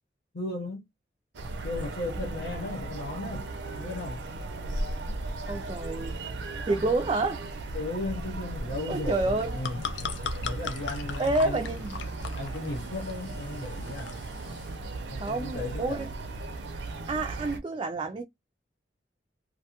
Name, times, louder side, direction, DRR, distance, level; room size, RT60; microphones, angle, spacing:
voice 1, 0.3-0.9 1.6-4.3 7.7-9.9 10.4-11.6 12.0-14.1 15.1-16.1, left 2 dB, 70° left, 0.9 m, -36 dB
sound 1, 1.3-17.6, right 2 dB, 85° right, 0.5 m, -36 dB
voice 2, 5.5-6.2 6.6-7.4 8.9-9.6 11.2-12.0 15.2-16.1 17.1-18.2, right 2 dB, 30° right, 0.3 m, -28 dB
sound 2, 9.3-14.7, left 6 dB, 90° left, 0.5 m, -39 dB
2.5 x 2.2 x 2.8 m
head